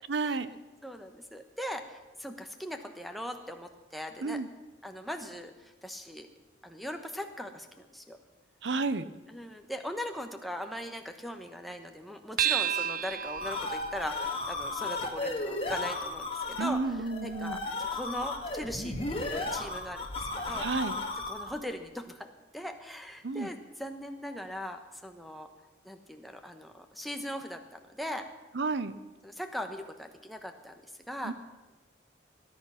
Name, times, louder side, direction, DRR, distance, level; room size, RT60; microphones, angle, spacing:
voice 1, 0.1-0.5 4.2-4.5 8.6-9.0 16.6-17.6 20.6-21.0 23.2-23.5 28.5-29.0 31.2-31.3, right 3 dB, 75° right, 14 dB, 0.8 m, -31 dB
voice 2, 0.8-4.4 4.8-6.3 6.6-8.2 9.3-20.7 21.3-22.3 22.5-25.5 25.8-28.3 29.2-30.7 31.1-31.3, equal, ahead, 4 dB, 1.1 m, -40 dB
sound 1, 12.4-17.1, right 10 dB, 50° right, 0.4 m, -35 dB
sound 2, 13.1-21.6, left 2 dB, 30° left, 1.8 m, -35 dB
18.5 x 10.5 x 5.8 m, 1.2 s
head